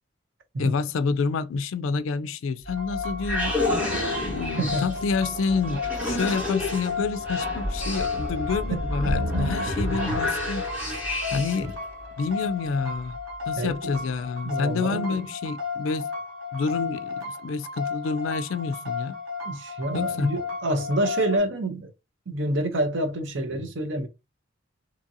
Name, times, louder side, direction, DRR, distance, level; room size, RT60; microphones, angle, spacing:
voice 1, 0.6-3.6 4.2-11.0 11.3-11.8 12.2-13.2 13.5-16.1 16.5-19.2 19.9-20.3, left 4 dB, 80° left, 0.3 m, -28 dB
sound 1, 2.7-11.7, left 1 dB, 10° right, 1.1 m, -29 dB
sound 2, 2.7-21.4, left 5 dB, 85° right, 1.0 m, -34 dB
voice 2, 4.6-4.9 11.6-11.7 13.6-14.0 14.4-15.2 19.5-21.9 22.3-24.1, right 1 dB, 65° right, 0.6 m, -27 dB
2.8 x 2.6 x 2.6 m
head